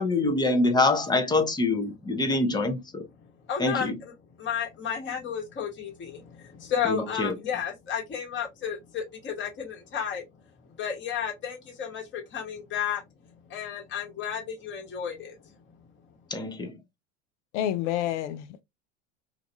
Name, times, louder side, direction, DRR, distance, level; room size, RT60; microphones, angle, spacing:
voice 1, 0.0-3.1 3.6-3.9 6.8-7.3 16.3-16.8, left 2 dB, 10° left, 0.5 m, -25 dB
voice 2, 3.2-4.1 4.4-10.3 10.6-13.0 13.5-15.6, left 8 dB, 30° left, 1.2 m, -33 dB
voice 3, 17.5-18.7, left 11 dB, 70° left, 0.5 m, -29 dB
2.5 x 2.3 x 2.6 m
hypercardioid pair, 95°, 37 cm